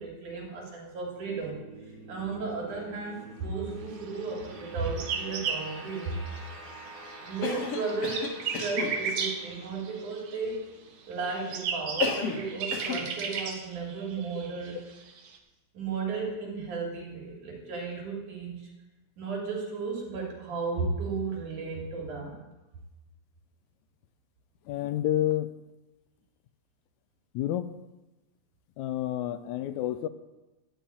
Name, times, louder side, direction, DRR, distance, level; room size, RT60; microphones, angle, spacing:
voice 1, 0.0-1.6 2.1-6.2 7.2-10.6 11.1-14.8 15.7-18.7 19.2-22.4, right 4 dB, 85° right, -1 dB, 4.3 m, -34 dB
sound 1, 1.2-12.4, right 2 dB, 30° right, 3.0 m, -48 dB
sound 2, 4.5-6.7 7.0-10.6 11.1-15.4, right 6 dB, 60° right, 2.1 m, -35 dB
Cough, 7.4-9.0 12.0-12.5 12.7-13.1, left 5 dB, 60° left, 2.3 m, -32 dB
voice 2, 24.7-25.5 27.3-27.7 28.8-30.1, left 12 dB, 80° left, 12 dB, 1.9 m, -29 dB
13.0 x 5.8 x 8.9 m, 1.1 s
omnidirectional pair, 3.4 m